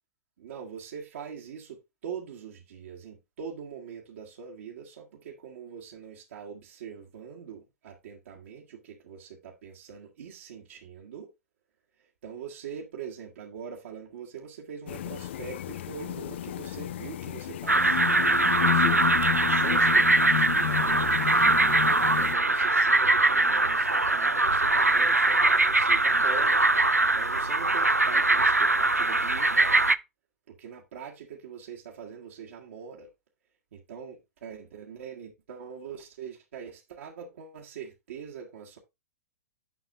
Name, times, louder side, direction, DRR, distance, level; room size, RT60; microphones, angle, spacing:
voice 1, 0.4-11.3 12.0-18.1 18.4-21.8 22.1-26.7 27.1-29.9 30.5-33.1 33.7-38.8, right 7 dB, 55° right, 1.7 m, -43 dB
sound 1, 14.9-22.3, left 12 dB, 50° left, 0.5 m, -32 dB
sound 2, 17.7-29.9, right 2 dB, 90° right, 0.4 m, -22 dB
10.0 x 6.2 x 2.3 m
figure-of-eight pair, 110°, 8 cm